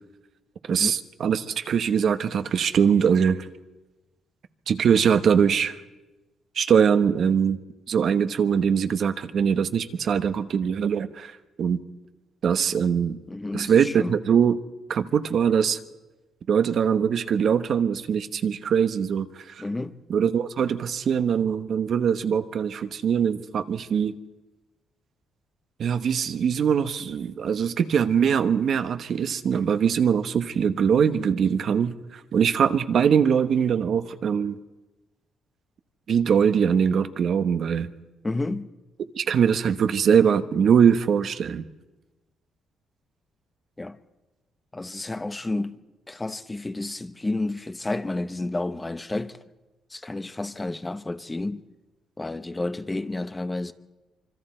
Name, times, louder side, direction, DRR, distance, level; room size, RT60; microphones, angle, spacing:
voice 1, 0.7-3.5 4.7-5.8 6.6-7.6 7.9-11.3 11.6-11.8 12.4-13.2 13.5-14.6 14.9-15.8 16.5-19.4 20.1-24.1 25.8-34.6 36.1-37.9 39.1-41.6, right 7 dB, 60° right, 1.0 m, -22 dB
voice 2, 13.3-14.1 19.6-20.0 38.2-38.7 43.8-44.0 44.7-45.8 46.1-49.4 49.9-51.6 52.2-53.7, left 2 dB, 20° left, 0.9 m, -30 dB
25.5 x 24.0 x 4.4 m
cardioid pair, 90°, 0 cm